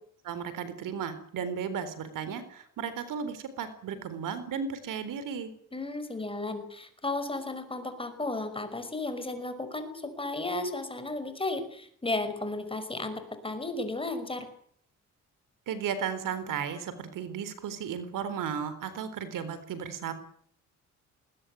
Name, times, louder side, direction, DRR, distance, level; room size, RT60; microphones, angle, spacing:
voice 1, 0.2-5.5 15.7-20.1, right 7 dB, 75° right, 13 dB, 3.9 m, -35 dB
voice 2, 5.7-14.5, left 2 dB, 15° left, 9 dB, 5.5 m, -34 dB
21.0 x 20.0 x 9.3 m, 0.63 s
cardioid pair, 100°, 32 cm